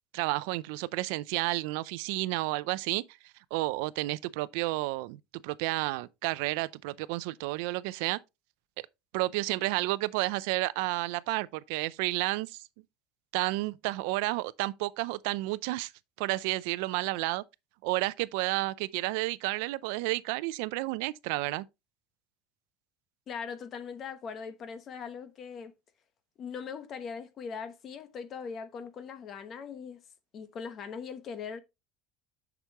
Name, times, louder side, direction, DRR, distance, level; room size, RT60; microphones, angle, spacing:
voice 1, 0.1-3.0 3.5-5.2 5.4-8.2 9.1-12.6 13.3-15.9 16.2-17.4 17.8-21.7, right 20 dB, 75° right, 0.5 m, -31 dB
voice 2, 23.3-25.7 26.4-30.0 30.3-31.6, left 6 dB, 35° left, 1.0 m, -40 dB
8.0 x 6.1 x 3.0 m
supercardioid pair, 140°, 0 cm